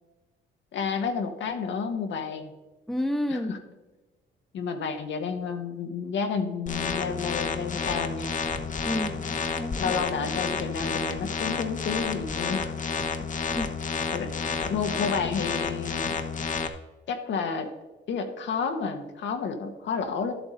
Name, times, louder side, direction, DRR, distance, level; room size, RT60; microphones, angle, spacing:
voice 1, 0.7-2.5 3.3-3.6 4.5-8.3 9.8-12.7 14.1-14.3 14.6-16.2 17.1-17.7 18.1-20.4, left 5 dB, 65° left, 6 dB, 1.2 m, -30 dB
voice 2, 2.9-3.6 8.8-10.0 13.5-13.7, left 1 dB, ahead, 6 dB, 1.1 m, -31 dB
sound 1, 6.7-16.7, left 5 dB, 40° left, 1.0 m, -30 dB
12.0 x 7.8 x 4.0 m, 1.2 s
cardioid pair, 90°, 20 cm